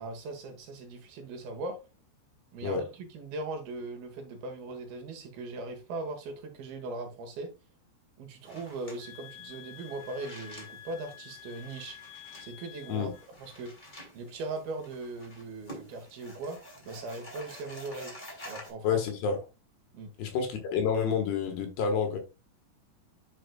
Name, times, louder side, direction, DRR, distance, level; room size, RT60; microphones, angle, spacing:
voice 1, 0.0-1.8 2.5-7.5 8.2-12.0 12.4-13.1 13.4-13.7 14.1-16.6 16.9-18.1 18.5-19.1 19.9-20.1, right 2 dB, 65° right, 3.1 m, -39 dB
sound 1, 8.4-18.7, equal, 15° left, 2.0 m, -49 dB
sound 2, 9.0-13.3, left 12 dB, 90° left, 3.1 m, -49 dB
voice 2, 18.8-19.4 20.2-22.2, left 6 dB, 75° left, 3.5 m, -29 dB
9.3 x 6.1 x 2.3 m
omnidirectional pair, 4.9 m